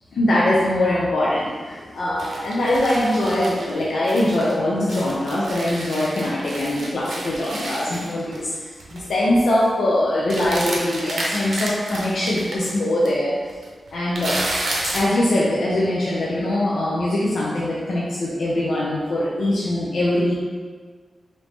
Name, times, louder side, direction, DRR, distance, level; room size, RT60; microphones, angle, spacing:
voice 1, 0.1-8.5 8.9-13.4 13.9-14.4 14.8-20.4, left 1 dB, 85° left, -6 dB, 0.5 m, -22 dB
sound 1, 2.2-4.5 4.9-8.6 8.8-9.0 9.3-9.7 10.3-12.7 13.1-13.2 13.5-15.1, right 1 dB, 85° right, 0.6 m, -31 dB
3.4 x 2.6 x 3.1 m, 1.5 s
wide cardioid pair, 95°, 0 cm